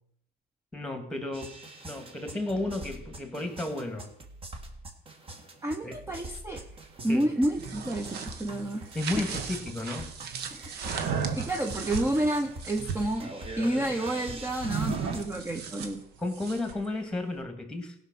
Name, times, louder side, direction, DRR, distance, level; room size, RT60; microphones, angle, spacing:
voice 1, 0.7-4.1 5.8-6.0 7.1-7.3 8.9-10.1 16.2-17.9, left 2 dB, 5° left, 7 dB, 2.0 m, -33 dB
sound 1, 1.3-15.2, right 2 dB, 35° right, 1.8 m, -44 dB
voice 2, 5.6-6.7 7.0-8.9 9.2-9.4 10.5-11.1 11.3-16.0, right 1 dB, 15° right, 6 dB, 0.8 m, -30 dB
sound 2, 7.4-13.2 14.6-16.9, right 6 dB, 75° right, 1.4 m, -36 dB
17.0 x 5.9 x 6.1 m, 0.71 s
cardioid pair, 110°, 17 cm